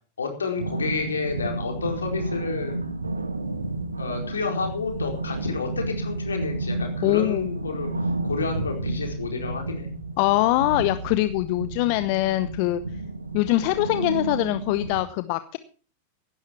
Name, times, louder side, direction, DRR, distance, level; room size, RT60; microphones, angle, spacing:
voice 1, 0.2-2.8 4.0-7.9 8.2-9.9, left 5 dB, 75° left, 3 dB, 4.5 m, -30 dB
sound 1, 0.6-15.0, right 2 dB, 80° right, 1.6 m, -31 dB
voice 2, 7.0-7.5 10.2-12.8 13.3-15.6, left 17 dB, 45° left, 13 dB, 0.8 m, -23 dB
16.5 x 11.5 x 4.4 m, 0.39 s
figure-of-eight pair, 90°, 0 cm